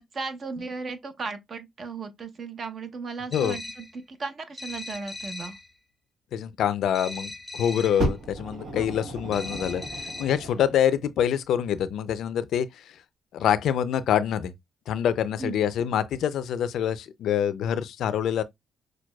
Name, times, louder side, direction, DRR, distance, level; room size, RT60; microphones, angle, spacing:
voice 1, 0.0-5.6 8.7-8.9 15.4-15.6, right 4 dB, 45° right, 0.7 m, -36 dB
sound 1, 3.3-4.0 4.6-5.7 6.9-8.1 9.3-10.5, left 2 dB, 5° left, 0.6 m, -39 dB
voice 2, 6.3-12.8 13.3-14.5 14.9-18.4, left 9 dB, 75° left, 0.4 m, -26 dB
Fire, 8.0-10.8 11.6-11.7, right 1 dB, 70° right, 1.4 m, -33 dB
6.0 x 2.2 x 2.2 m
cardioid pair, 90°, 0 cm